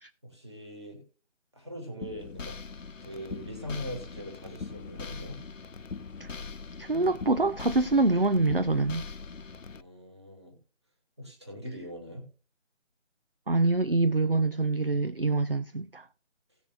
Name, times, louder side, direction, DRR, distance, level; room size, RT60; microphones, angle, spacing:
voice 1, 0.3-1.0 1.6-2.6 3.0-5.4 9.7-10.5 11.2-12.2, equal, 20° right, 2.5 m, -41 dB
sound 1, 2.0-9.8, left 4 dB, 80° left, 0.9 m, -41 dB
voice 2, 6.8-9.0 13.5-16.1, right 3 dB, 50° right, 0.5 m, -25 dB
18.0 x 7.0 x 2.5 m
figure-of-eight pair, 180°, 38 cm